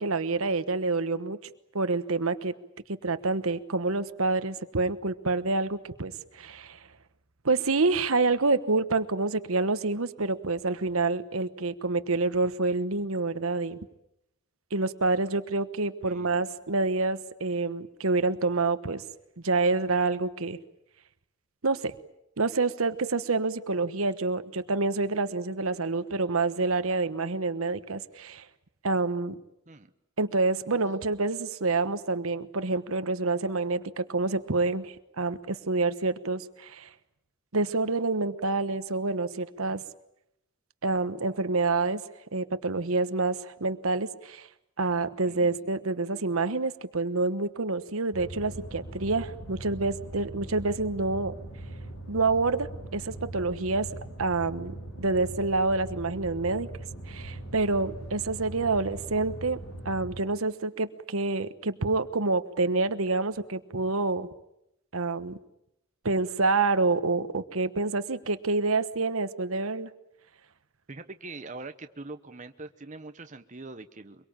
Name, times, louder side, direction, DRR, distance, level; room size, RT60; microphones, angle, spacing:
voice 1, 0.0-1.4 1.7-2.5 2.9-6.8 7.4-13.8 14.7-19.0 19.4-20.6 21.6-21.9 22.4-28.4 28.8-29.4 30.2-36.9 37.5-39.8 40.8-42.0 42.3-44.5 44.8-51.3 52.1-53.9 54.2-56.7 57.1-59.6 59.8-64.3 64.9-65.4 66.0-69.9, right 3 dB, 75° right, 12 dB, 1.2 m, -27 dB
voice 2, 16.0-16.4 29.7-29.9 45.2-45.6 70.9-74.2, right 3 dB, 35° right, 8 dB, 1.0 m, -43 dB
sound 1, 48.1-60.2, right 1 dB, 80° left, 5.2 m, -41 dB
24.5 x 23.0 x 8.9 m, 0.81 s
head